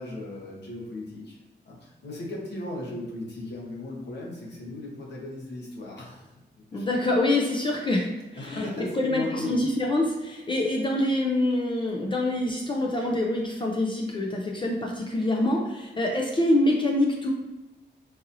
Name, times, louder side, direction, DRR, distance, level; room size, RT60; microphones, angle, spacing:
voice 1, 0.0-1.4 1.7-6.3 6.7-6.8 8.4-9.6, left 2 dB, 70° left, -3 dB, 1.0 m, -36 dB
voice 2, 6.7-17.3, left 1 dB, 30° left, 0 dB, 0.4 m, -25 dB
3.9 x 2.7 x 2.6 m, 1.1 s
wide cardioid pair, 140°, 18 cm